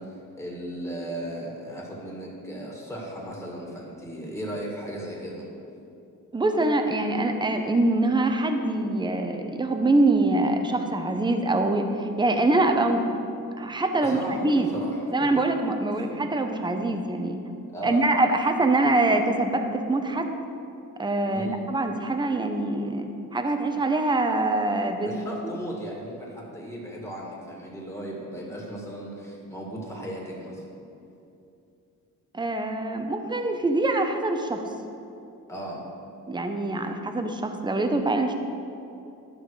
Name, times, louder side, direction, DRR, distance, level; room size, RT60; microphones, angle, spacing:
voice 1, 0.0-5.5 14.0-15.3 16.0-16.1 17.7-18.1 21.3-21.6 25.0-30.6 35.5-35.8, right 1 dB, 10° left, -3 dB, 2.1 m, -36 dB
voice 2, 6.3-13.2 13.6-14.7 15.1-17.4 17.8-20.3 21.0-25.2 32.3-34.6 36.3-38.3, right 2 dB, 15° right, 5 dB, 0.7 m, -24 dB
12.0 x 5.6 x 4.8 m, 2.7 s
cardioid pair, 105°, 34 cm